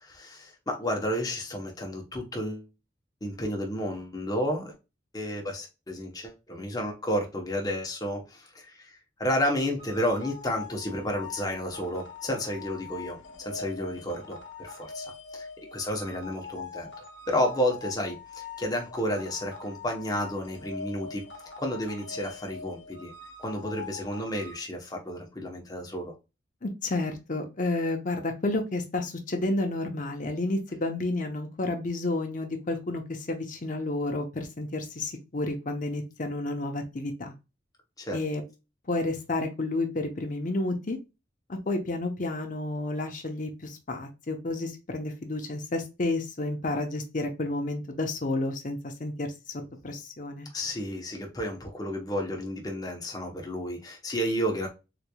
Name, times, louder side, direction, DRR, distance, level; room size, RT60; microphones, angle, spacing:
voice 1, 0.0-2.7 3.2-4.7 5.1-8.9 9.2-16.9 17.3-21.2 21.6-23.1 23.4-26.1 38.0-38.2 50.5-54.7, equal, 20° left, 1 dB, 1.0 m, -31 dB
sound 1, 9.8-24.5, left 5 dB, 70° left, 0.9 m, -43 dB
voice 2, 26.6-37.3 38.1-38.4 38.9-41.0 41.5-49.3 49.8-50.5, left 2 dB, 45° left, 4 dB, 0.7 m, -31 dB
3.9 x 3.2 x 2.2 m, 0.27 s
head